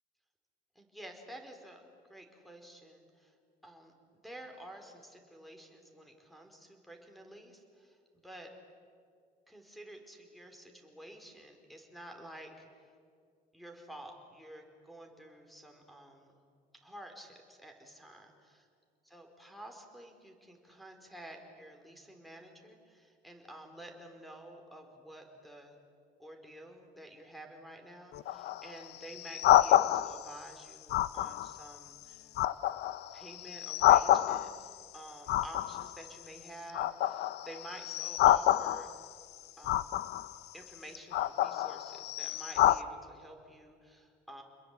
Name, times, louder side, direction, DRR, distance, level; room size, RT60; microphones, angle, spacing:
voice 1, 0.7-1.8 2.1-3.3 3.6-8.5 9.5-12.9 13.5-16.4 16.8-18.3 19.0-25.7 26.2-32.3 33.1-38.9 39.6-39.8 40.5-44.4, right 1 dB, ahead, 4 dB, 4.7 m, -50 dB
sound 1, 28.1-30.3 30.9-31.6 32.0-34.7 35.3-36.4 36.7-39.1 39.6-40.3 40.9-42.8, left 13 dB, 75° left, 0.7 m, -28 dB
30.0 x 21.5 x 8.5 m, 2.3 s
cardioid pair, 110°, 17 cm